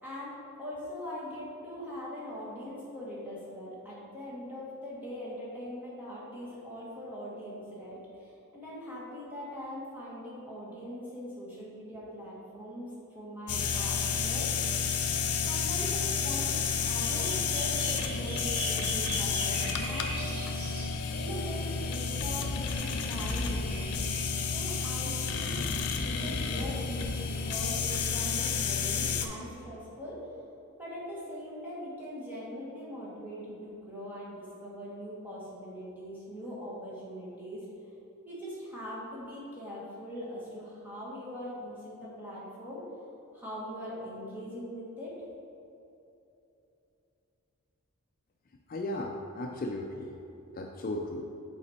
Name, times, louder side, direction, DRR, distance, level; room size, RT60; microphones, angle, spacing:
voice 1, 0.0-14.5 15.4-16.5 16.8-20.4 21.1-24.1 24.5-25.6 26.0-30.2 30.8-37.7 38.2-42.8 43.3-45.2, equal, 10° right, -8 dB, 1.6 m, -41 dB
sound 1, 13.5-29.3, left 5 dB, 90° left, 0.6 m, -31 dB
sound 2, 17.0-21.0 22.2-22.3 22.6-24.4, right 2 dB, 70° right, 1.3 m, -40 dB
voice 2, 48.7-50.2 50.5-51.3, left 1 dB, 40° left, 2 dB, 0.4 m, -36 dB
7.5 x 4.2 x 4.3 m, 2.8 s
head